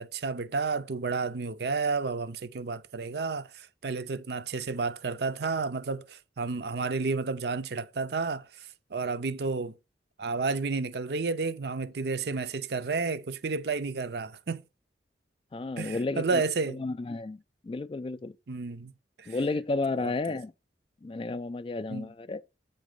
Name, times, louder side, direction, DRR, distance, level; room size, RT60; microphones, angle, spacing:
voice 1, 0.0-9.8 10.2-14.6 15.8-16.8 18.5-18.9 19.2-19.3 19.9-20.1 21.9-22.1, right 4 dB, 60° right, 0.5 m, -31 dB
voice 2, 15.5-16.4 16.7-18.3 19.3-20.5 21.0-22.4, left 3 dB, 30° left, 0.3 m, -32 dB
8.4 x 4.0 x 5.0 m
head